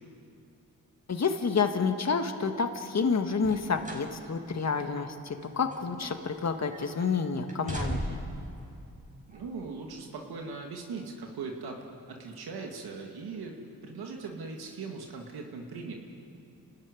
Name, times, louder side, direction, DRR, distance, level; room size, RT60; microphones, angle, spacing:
voice 1, 1.1-8.2, left 5 dB, 45° left, 6 dB, 1.7 m, -29 dB
sound 1, 3.4-4.1 4.5-4.7 5.4-6.4 6.7-7.1 7.5-8.4 9.3-9.4, right 1 dB, 20° right, 5.2 m, -37 dB
voice 2, 9.3-11.8 12.1-15.9, right 4 dB, 85° right, 1 dB, 2.2 m, -40 dB
29.5 x 13.5 x 9.7 m, 2.5 s
cardioid pair, 70°, 37 cm